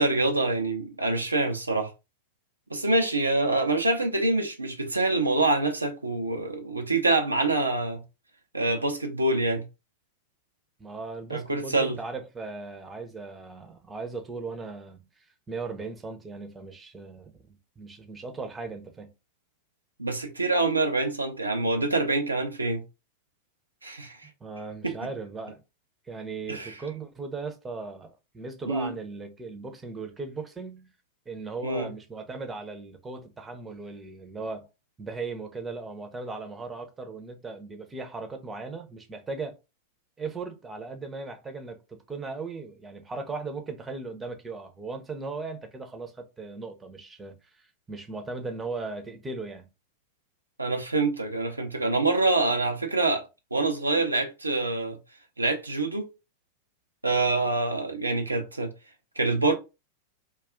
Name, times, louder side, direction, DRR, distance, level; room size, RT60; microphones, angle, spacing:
voice 1, 0.0-1.9 2.7-8.0 8.5-9.6 11.3-12.0 20.0-22.8 23.8-24.3 24.8-24.9 26.5-26.8 28.7-28.9 31.6-31.9 50.6-53.3 53.5-55.0 55.4-56.1 57.0-58.7 59.2-59.5, right 2 dB, 90° right, 0.5 m, -26 dB
voice 2, 10.8-19.1 24.4-25.6 26.0-30.9 31.3-34.7 35.0-39.6 40.2-49.7, right 3 dB, 15° right, 0.6 m, -38 dB
2.3 x 2.3 x 3.5 m
figure-of-eight pair, 95°, 0 cm